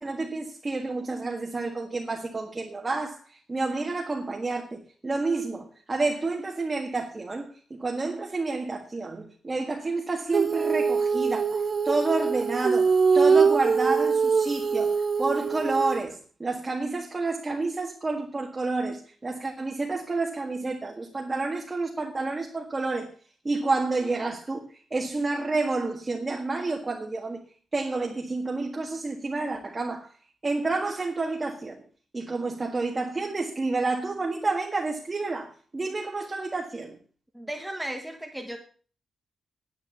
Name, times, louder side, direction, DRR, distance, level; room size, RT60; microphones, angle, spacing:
voice 1, 0.0-14.9 15.2-23.1 23.4-27.4 27.7-30.1 30.4-31.8 32.1-37.0, right 3 dB, 25° right, 1.7 m, -29 dB
Female singing, 10.3-16.0, right 5 dB, 40° right, 0.9 m, -23 dB
voice 2, 37.3-38.6, right 1 dB, 5° right, 1.4 m, -35 dB
10.5 x 9.2 x 8.0 m
wide cardioid pair, 150°, 0 cm